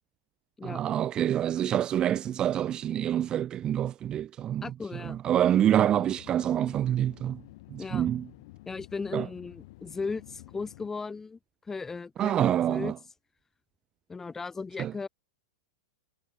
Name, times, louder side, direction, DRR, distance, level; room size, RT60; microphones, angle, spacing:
voice 1, 0.6-4.6 5.2-7.4 7.7-8.2 9.1-9.2 12.2-12.9 14.8-14.9, right 11 dB, 30° right, 0.5 m, -26 dB
voice 2, 4.6-5.2 7.8-8.1 8.7-11.4 11.6-12.9 14.1-15.1, left 4 dB, 15° left, 3.2 m, -36 dB
sound 1, 5.9-10.9, left 21 dB, 55° left, 4.0 m, -50 dB
hypercardioid pair, 105°, 3 cm